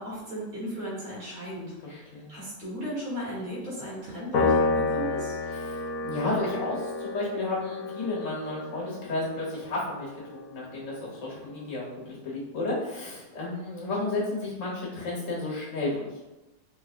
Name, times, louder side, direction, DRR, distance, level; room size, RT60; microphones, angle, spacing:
voice 1, 0.0-5.4, equal, 30° right, -8 dB, 1.4 m, -36 dB
voice 2, 1.8-2.4 5.5-16.1, left 2 dB, 50° left, -5 dB, 1.4 m, -32 dB
Door, 3.5-4.8, right 2 dB, 50° right, 1.0 m, -49 dB
Piano, 4.3-10.9, left 3 dB, 65° left, 0.9 m, -30 dB
3.6 x 3.2 x 2.5 m, 1.0 s
omnidirectional pair, 1.9 m